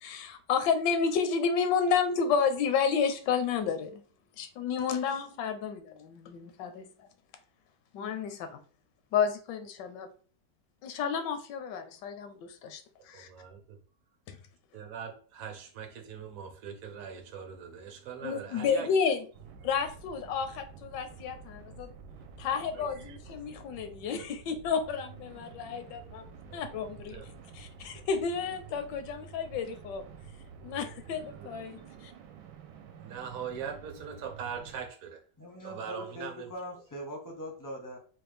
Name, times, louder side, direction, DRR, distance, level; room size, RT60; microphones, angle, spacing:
voice 1, 0.0-4.0 4.4-7.1 7.9-8.6 9.1-10.1 10.8-13.3 14.3-14.4 18.2-19.2 19.6-21.9 22.4-26.3 26.5-27.2 27.5-30.0 30.6-32.1, left 6 dB, 80° left, 8 dB, 1.2 m, -31 dB
voice 2, 13.1-13.8 14.7-19.0 22.7-23.2 24.2-24.3 26.5-27.3 30.6-30.8 31.1-31.8 33.0-35.2 35.6-36.5, right 7 dB, 60° right, 4 dB, 1.0 m, -42 dB
sound 1, 19.3-34.8, right 5 dB, 80° right, 1.2 m, -49 dB
voice 3, 35.4-38.0, equal, 25° left, -1 dB, 0.4 m, -41 dB
4.3 x 2.2 x 3.3 m, 0.40 s
omnidirectional pair, 1.9 m